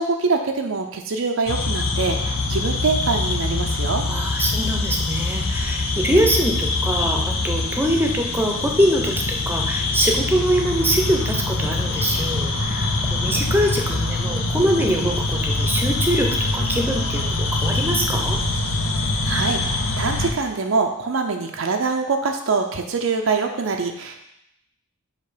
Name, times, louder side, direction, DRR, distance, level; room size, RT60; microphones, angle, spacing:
voice 1, 0.0-4.0 19.2-19.6 20.0-24.2, right 4 dB, 80° right, 3 dB, 0.6 m, -24 dB
sound 1, 1.5-20.3, left 2 dB, 80° left, 0.7 m, -24 dB
voice 2, 4.0-18.4, right 1 dB, 10° right, 1 dB, 0.7 m, -23 dB
6.7 x 2.9 x 5.0 m, 0.80 s
head